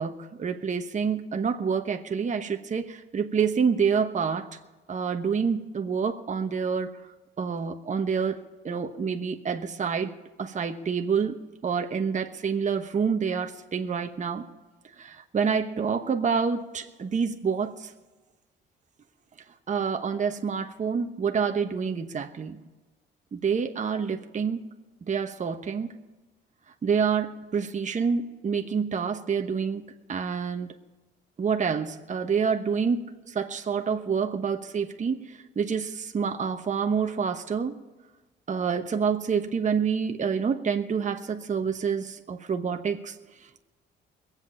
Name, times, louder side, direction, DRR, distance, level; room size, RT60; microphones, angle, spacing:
voice 1, 0.0-4.5 4.9-7.0 7.4-14.4 15.0-17.9 19.7-22.6 23.3-24.7 25.0-26.0 26.8-30.7 31.4-37.8 38.5-43.2, right 6 dB, 40° right, 5 dB, 1.1 m, -28 dB
21.5 x 8.3 x 5.5 m, 1.2 s
cardioid pair, 90°, 20 cm